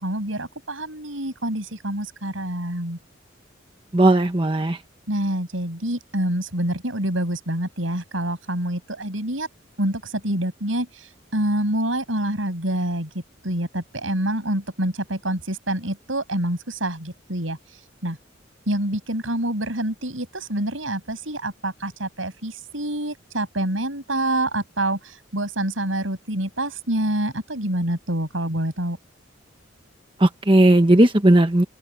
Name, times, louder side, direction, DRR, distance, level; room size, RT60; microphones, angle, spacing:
voice 1, 0.0-3.0 5.1-9.5 9.8-13.1 13.4-17.6 18.0-18.2 18.7-29.0, right 1 dB, 90° right, 7.8 m, -26 dB
voice 2, 3.9-4.8 30.2-31.6, right 1 dB, 25° right, 1.2 m, -16 dB
open air
head